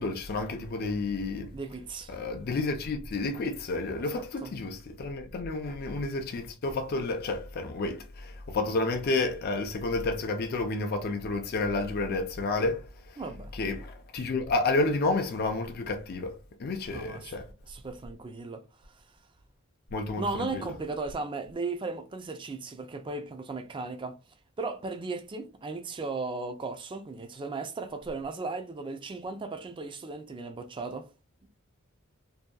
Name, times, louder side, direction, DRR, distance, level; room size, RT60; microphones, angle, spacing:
voice 1, 0.0-1.5 2.1-12.8 13.5-16.3 16.6-17.5 19.9-20.6, left 3 dB, 50° left, 0.4 m, -30 dB
voice 2, 1.5-2.1 4.0-4.5 13.2-13.5 16.9-17.4 17.7-18.6 20.2-24.2 24.6-31.1, right 3 dB, 25° right, 0.4 m, -36 dB
2.7 x 2.2 x 2.2 m
head